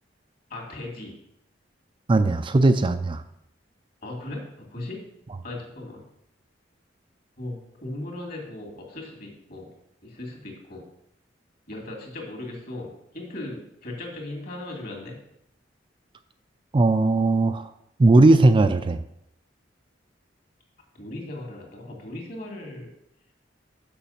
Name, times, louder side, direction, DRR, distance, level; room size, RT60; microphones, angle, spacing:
voice 1, 0.5-1.1 4.0-5.0 5.4-6.0 7.4-9.7 10.0-10.9 11.7-15.2 20.9-22.9, left 1 dB, 55° left, 0 dB, 2.5 m, -37 dB
voice 2, 2.1-3.2 16.7-17.7 18.0-19.0, right 2 dB, 25° right, 10 dB, 0.4 m, -18 dB
7.0 x 6.0 x 5.7 m, 0.77 s
head